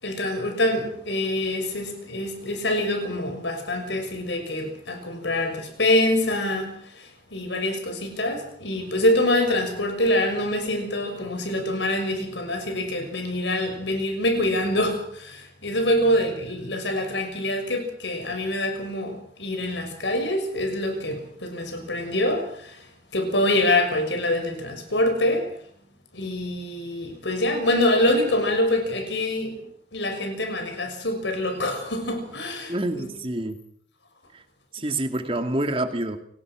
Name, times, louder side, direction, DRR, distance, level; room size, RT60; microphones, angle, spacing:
voice 1, 0.0-22.9 23.1-25.6 26.1-29.6 29.9-33.1, left 1 dB, 80° left, 6.2 m, -25 dB
voice 2, 32.7-33.6 34.3-34.4 34.7-36.2, right 1 dB, 30° right, 2.3 m, -27 dB
29.0 x 18.5 x 6.2 m
head